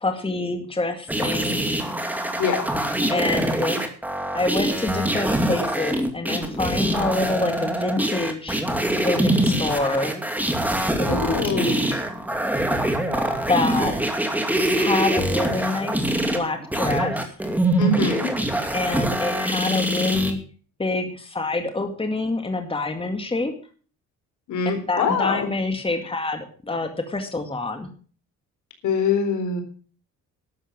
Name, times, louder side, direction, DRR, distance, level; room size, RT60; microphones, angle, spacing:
voice 1, 0.0-1.6 3.1-3.8 4.3-8.6 9.0-10.1 11.0-12.0 13.5-13.9 14.7-17.3 18.7-20.4 20.8-23.5 24.9-27.9, left 2 dB, 20° left, 6 dB, 2.1 m, -26 dB
sound 1, 1.1-20.3, right 1 dB, 5° right, 2.5 m, -24 dB
voice 2, 11.1-11.7 17.8-18.3 24.5-25.5 28.8-29.6, left 4 dB, 75° left, 5 dB, 4.0 m, -23 dB
12.5 x 7.8 x 7.2 m, 0.42 s
cardioid pair, 90°, 30 cm